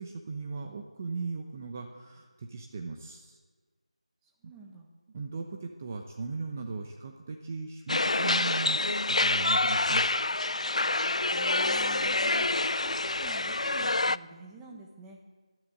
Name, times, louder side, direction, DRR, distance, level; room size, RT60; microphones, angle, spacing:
voice 1, 0.0-3.4 5.1-10.0, right 4 dB, 25° right, 3 dB, 0.9 m, -38 dB
voice 2, 4.2-4.9 11.3-12.5 12.8-15.2, right 2 dB, 5° right, -1 dB, 1.2 m, -48 dB
sound 1, 7.9-14.2, left 2 dB, 80° left, 0.4 m, -27 dB
12.0 x 11.0 x 9.4 m, 1.4 s
figure-of-eight pair, 170°, 3 cm